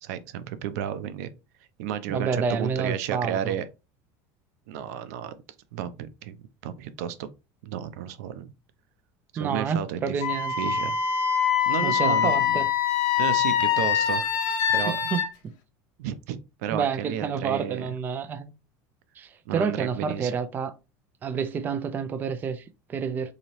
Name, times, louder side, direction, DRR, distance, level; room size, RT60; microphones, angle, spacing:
voice 1, 0.0-1.3 1.8-3.6 4.7-5.3 5.7-6.4 6.6-7.3 7.6-8.5 9.4-10.2 10.6-11.0 11.7-12.6 13.2-14.3 14.7-15.0 16.0-17.9 19.5-20.3, right 10 dB, 85° right, 0.5 m, -32 dB
voice 2, 2.1-3.5 9.4-10.7 11.8-12.7 14.9-15.5 16.7-18.5 19.2-20.7 21.2-23.3, right 6 dB, 20° right, 0.4 m, -29 dB
Wind instrument woodwind instrument, 10.2-15.3, left 8 dB, 50° left, 0.9 m, -24 dB
4.0 x 2.8 x 3.0 m
cardioid pair, 155°, 8 cm